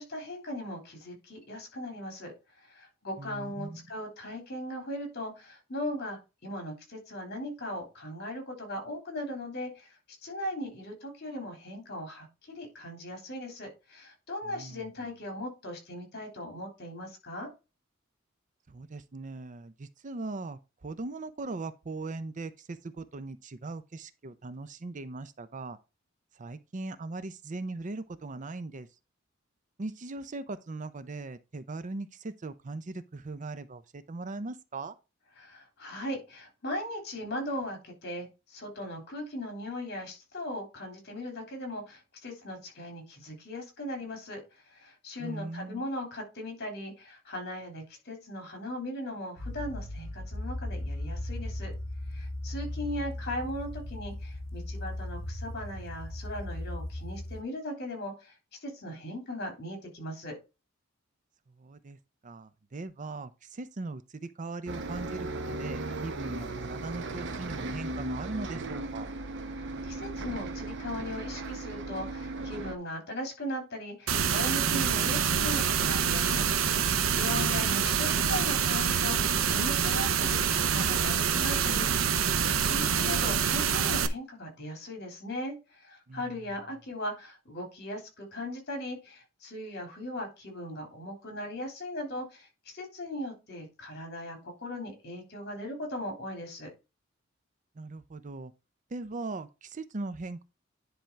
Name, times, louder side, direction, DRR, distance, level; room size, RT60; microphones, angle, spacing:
voice 1, 0.0-2.3 2.6-17.5 35.4-51.7 52.1-58.3 58.6-60.4 69.5-76.5 76.7-96.7, left 1 dB, 55° left, 3.4 m, -38 dB
voice 2, 3.2-3.8 14.4-14.9 18.7-25.8 26.3-28.9 29.8-35.0 45.2-45.8 52.7-52.8 61.5-69.1 77.1-78.0 86.1-86.5 97.8-98.5 98.9-100.4, right 3 dB, 40° right, 0.6 m, -39 dB
sound 1, 49.4-57.4, left 1 dB, 70° left, 1.4 m, -37 dB
Bus, 64.7-72.8, right 2 dB, 60° right, 0.9 m, -37 dB
sound 2, 74.1-84.1, right 7 dB, 85° right, 0.8 m, -26 dB
10.5 x 3.5 x 4.5 m
head